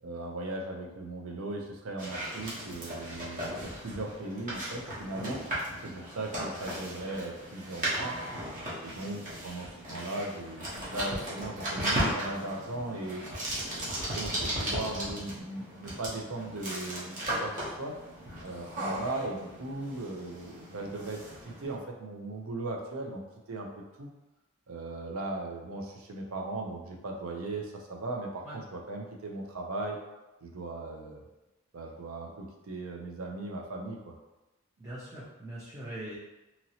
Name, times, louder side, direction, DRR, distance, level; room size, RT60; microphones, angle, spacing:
voice 1, 0.0-5.4 5.8-8.2 8.8-13.2 14.0-17.9 18.4-23.2 23.5-23.7 24.0-24.1 24.7-30.0 30.4-31.2 31.7-34.1, right 2 dB, 75° right, 0 dB, 0.5 m, -38 dB
sound 1, 2.0-21.8, right 1 dB, 35° right, 0.8 m, -36 dB
voice 2, 34.8-36.2, right 1 dB, 15° right, -9 dB, 0.5 m, -42 dB
2.9 x 2.7 x 2.7 m, 1.0 s
head